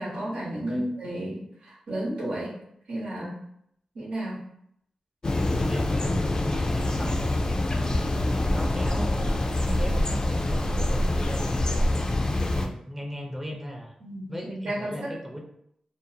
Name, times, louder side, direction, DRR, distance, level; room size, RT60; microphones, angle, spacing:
voice 1, 0.0-2.6 2.9-3.4 3.9-4.4 8.2-8.4 14.0-15.1, right 1 dB, 85° right, -6 dB, 1.0 m, -32 dB
sound 1, 5.2-12.7, left 1 dB, 40° left, 0.3 m, -25 dB
voice 2, 5.6-13.9 14.3-15.4, equal, 15° right, 1 dB, 0.5 m, -37 dB
2.5 x 2.0 x 2.7 m, 0.73 s
cardioid pair, 60°, 2 cm